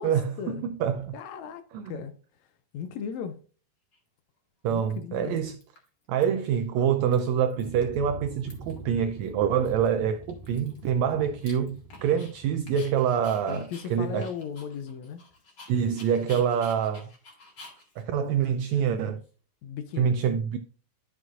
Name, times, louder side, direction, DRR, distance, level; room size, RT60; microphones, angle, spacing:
voice 1, 0.0-1.1 1.7-1.9 4.6-5.6 6.1-14.3 15.7-17.1 18.0-19.2 20.0-20.6, right 8 dB, 85° right, 1.5 m, -26 dB
voice 2, 1.1-3.4 4.7-5.4 13.5-15.2 16.2-16.4 19.6-20.2, left 7 dB, 75° left, 1.7 m, -37 dB
Dog, 3.9-4.0 4.7-5.2 5.5-6.2 6.5-6.6 6.9-8.0 8.2-8.9 9.2-9.3 9.7-12.3 12.7-19.3, left 3 dB, 40° left, 2.3 m, -51 dB
sound 1, 7.6-14.3, right 2 dB, 70° right, 2.4 m, -46 dB
11.5 x 6.2 x 2.5 m
omnidirectional pair, 3.6 m